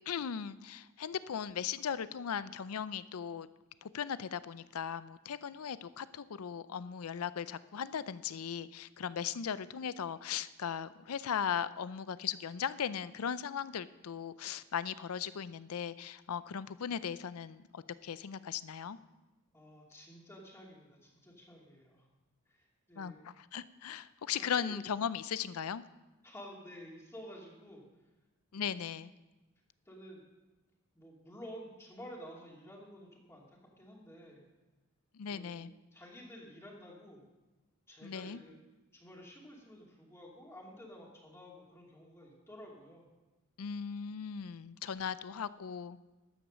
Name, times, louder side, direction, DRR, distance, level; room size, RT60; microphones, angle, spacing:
voice 1, 0.1-3.5 3.8-19.0 23.0-25.8 28.5-29.1 35.1-35.7 38.0-38.4 43.6-46.0, left 7 dB, 90° left, 16 dB, 0.5 m, -38 dB
voice 2, 19.5-22.1 22.5-23.2 24.4-24.8 26.2-27.8 28.5-28.8 29.9-30.2 30.9-34.4 35.2-37.2 37.9-38.6 38.9-43.1, equal, 10° left, -2 dB, 2.5 m, -51 dB
12.5 x 8.8 x 6.2 m, 1.1 s
head